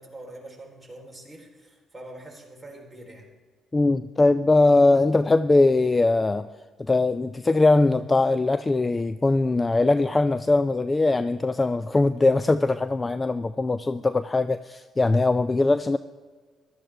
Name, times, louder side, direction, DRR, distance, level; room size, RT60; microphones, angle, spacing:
voice 1, 0.0-3.3, right 1 dB, 5° right, -2 dB, 3.7 m, -44 dB
voice 2, 3.7-6.5 6.8-16.0, left 2 dB, 25° left, 13 dB, 0.4 m, -21 dB
15.0 x 12.5 x 3.4 m, 1.5 s
supercardioid pair, 75°, 0 cm